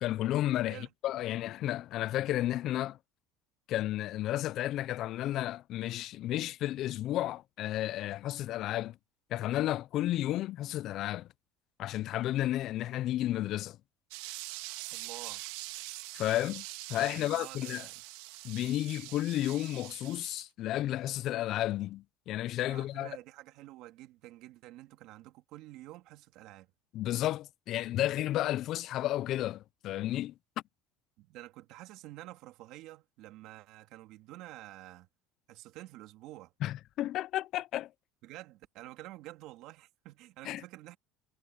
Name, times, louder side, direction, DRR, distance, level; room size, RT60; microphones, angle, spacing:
voice 1, 0.0-0.8 1.0-3.0 3.7-8.9 9.3-11.3 11.8-13.8 16.1-16.6 16.9-17.8 18.4-23.1 26.9-30.3 36.6-37.9 40.5-40.6, left 14 dB, 50° left, 0.3 m, -32 dB
sound 1, 14.1-20.4, right 20 dB, 85° right, 1.6 m, -44 dB
voice 2, 14.9-15.4 17.1-18.0 22.7-26.7 31.2-35.1 35.5-36.5 38.2-41.0, right 16 dB, 60° right, 2.2 m, -49 dB
cardioid pair, 145°, 0 cm